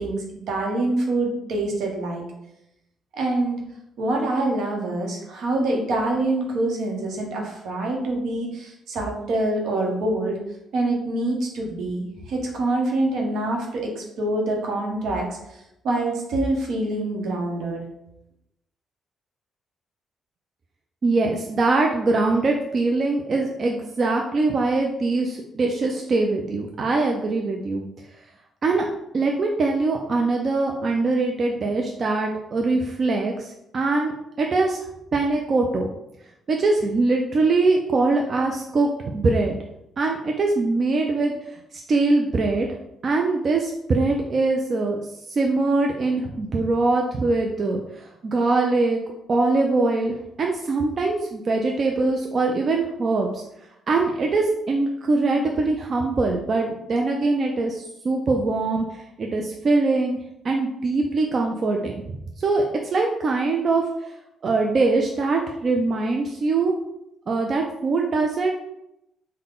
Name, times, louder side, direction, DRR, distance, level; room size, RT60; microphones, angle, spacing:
voice 1, 0.0-2.2 3.1-3.6 4.0-10.4 10.7-17.8, right 2 dB, 75° right, 0 dB, 0.9 m, -25 dB
voice 2, 21.0-27.8 28.6-28.8 29.1-34.1 34.4-34.8 35.1-35.9 36.5-39.6 40.0-41.3 41.9-42.7 43.0-45.0 45.3-49.0 49.3-53.4 53.9-60.2 60.4-62.6 62.9-63.8 64.4-66.7 67.3-68.5, right 3 dB, 45° right, 1 dB, 0.4 m, -22 dB
3.7 x 2.2 x 3.7 m, 0.84 s
cardioid pair, 90°, 0 cm